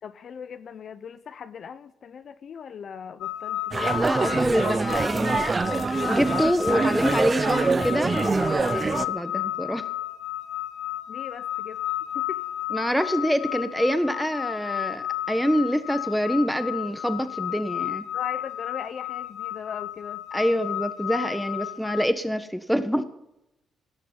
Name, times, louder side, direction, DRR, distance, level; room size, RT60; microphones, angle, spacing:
voice 1, 0.0-4.0 11.1-11.8 12.1-12.4 18.1-20.2, left 7 dB, 55° left, 12 dB, 0.7 m, -39 dB
sound 1, 3.2-22.1, left 13 dB, 90° left, 1.0 m, -33 dB
sound 2, 3.7-9.1, right 4 dB, 30° right, 0.6 m, -25 dB
voice 2, 3.9-5.6 6.0-9.9 12.7-18.1 20.3-23.0, equal, ahead, 10 dB, 1.4 m, -26 dB
17.0 x 6.6 x 9.6 m, 0.86 s
cardioid pair, 90°, 0 cm